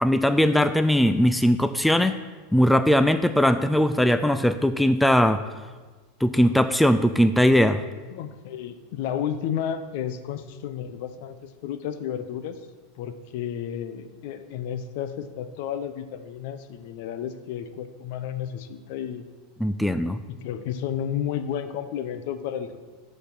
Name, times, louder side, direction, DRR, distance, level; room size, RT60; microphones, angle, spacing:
voice 1, 0.0-2.2 2.5-5.4 6.2-7.8 19.6-20.2, equal, 5° left, 11 dB, 0.3 m, -20 dB
voice 2, 8.1-12.6 13.0-19.2 20.3-22.8, left 9 dB, 65° left, 11 dB, 0.7 m, -32 dB
8.5 x 5.4 x 5.9 m, 1.3 s
supercardioid pair, 135°, 0 cm